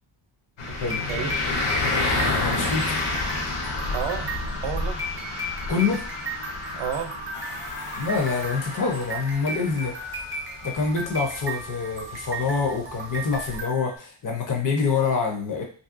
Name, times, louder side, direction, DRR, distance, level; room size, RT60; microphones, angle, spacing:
sound 1, 0.6-13.6, left 3 dB, 70° left, 0.8 m, -30 dB
sound 2, 0.7-14.0, right 2 dB, 30° right, 0.4 m, -36 dB
voice 1, 0.7-1.4 3.9-5.0 6.7-7.1, right 8 dB, 75° right, 7 dB, 0.5 m, -32 dB
voice 2, 2.3-2.9 5.7-6.0 8.0-9.9 10.6-15.6, left 5 dB, 40° left, 2 dB, 0.5 m, -26 dB
sound 3, 7.3-11.7, left 2 dB, 90° left, 1.0 m, -41 dB
2.9 x 2.7 x 2.4 m, 0.42 s
wide cardioid pair, 165°, 49 cm